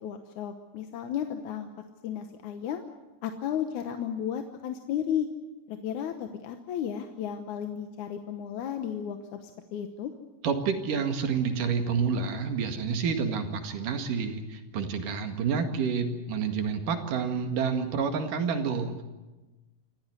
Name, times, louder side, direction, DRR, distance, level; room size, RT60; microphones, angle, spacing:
voice 1, 0.0-1.7 2.0-2.8 3.2-5.3 5.7-10.1, left 9 dB, 70° left, 6 dB, 2.4 m, -33 dB
voice 2, 10.4-19.0, right 6 dB, 75° right, 6 dB, 3.5 m, -29 dB
27.0 x 14.5 x 9.6 m, 1.1 s
omnidirectional pair, 3.8 m